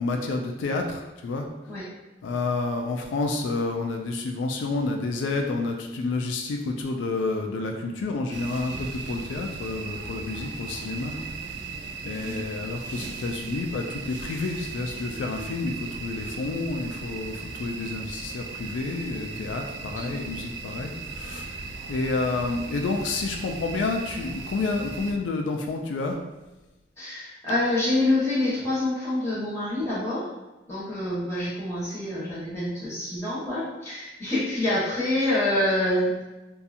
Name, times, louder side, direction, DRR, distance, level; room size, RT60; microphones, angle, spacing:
voice 1, 0.0-1.5 2.2-11.2 12.0-26.2, left 3 dB, 90° left, 3 dB, 0.3 m, -29 dB
sound 1, 8.3-25.1, right 4 dB, 65° right, 0.3 m, -37 dB
voice 2, 27.0-30.3 30.7-36.2, left 1 dB, 15° left, -10 dB, 1.1 m, -26 dB
2.7 x 2.3 x 2.5 m, 1.0 s
head